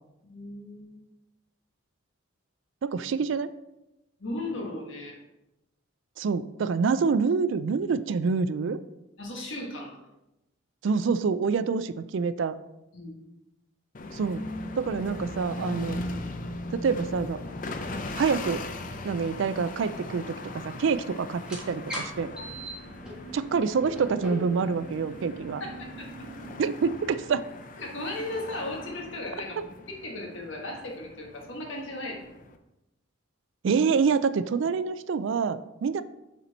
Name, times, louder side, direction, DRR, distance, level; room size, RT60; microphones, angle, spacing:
voice 1, 0.3-1.0 4.2-5.2 9.2-10.0 12.9-13.2 25.6-26.3 27.8-29.6 29.9-32.2, left 1 dB, 70° left, 0 dB, 1.5 m, -36 dB
voice 2, 2.8-3.5 6.2-8.8 10.8-12.5 14.1-14.5 14.8-16.0 16.7-17.4 18.1-18.6 19.0-20.3 20.6-22.3 23.3-25.6 26.6-27.5 33.6-36.0, right 5 dB, 65° right, 13 dB, 0.3 m, -26 dB
sound 1, 13.9-32.6, left 2 dB, 40° left, 0.5 m, -39 dB
sound 2, 21.4-26.6, equal, 5° right, 1.7 m, -40 dB
7.1 x 4.4 x 4.0 m, 0.92 s
head